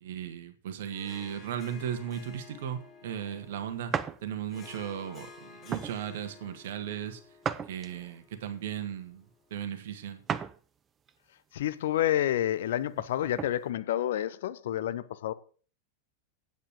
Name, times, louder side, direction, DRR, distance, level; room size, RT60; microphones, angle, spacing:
voice 1, 0.0-3.9 4.2-7.2 7.7-9.3 9.5-10.2, right 9 dB, 55° right, 1.7 m, -36 dB
Harp, 0.9-9.5, left 5 dB, 25° left, 2.0 m, -53 dB
sound 1, 3.9-4.2 4.8-5.0 5.7-6.0 7.4-8.2 10.3-10.6 11.1-11.2 12.9-13.6, right 7 dB, 25° right, 0.6 m, -34 dB
voice 2, 11.5-15.3, left 12 dB, 60° left, 0.7 m, -29 dB
9.9 x 8.3 x 6.1 m
figure-of-eight pair, 90°, 0 cm